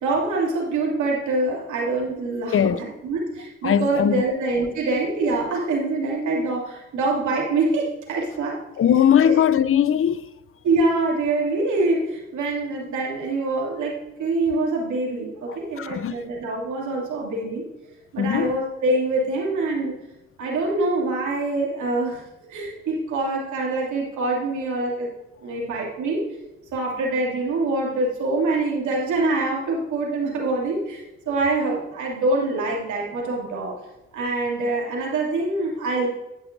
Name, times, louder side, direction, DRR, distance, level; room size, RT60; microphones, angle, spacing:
voice 1, 0.0-8.9 9.2-9.4 10.6-17.7 18.1-19.9 20.4-22.2 22.5-25.1 25.4-26.2 26.7-33.8 34.1-36.1, right 2 dB, 80° right, 2.8 m, -25 dB
voice 2, 3.6-4.2 8.8-10.2 15.8-16.1 18.2-18.6, left 9 dB, 45° left, 0.6 m, -19 dB
16.5 x 6.2 x 2.7 m
hypercardioid pair, 40°, 29 cm